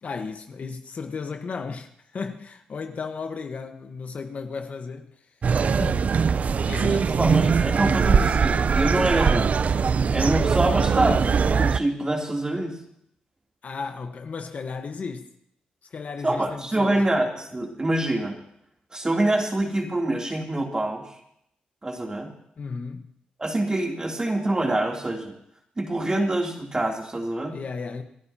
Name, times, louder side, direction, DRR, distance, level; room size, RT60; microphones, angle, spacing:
voice 1, 0.0-5.1 5.7-6.1 6.7-7.5 13.6-15.3 15.9-17.0 22.6-23.1 27.5-28.0, left 5 dB, 55° left, 1.3 m, -34 dB
sound 1, 5.4-11.8, right 6 dB, 55° right, 0.5 m, -21 dB
voice 2, 7.1-9.6 10.1-12.8 16.2-18.4 18.9-21.1 21.8-22.3 23.4-25.3 25.8-27.5, right 1 dB, 25° right, 3.2 m, -25 dB
28.0 x 11.0 x 2.9 m
cardioid pair, 60°, 3 cm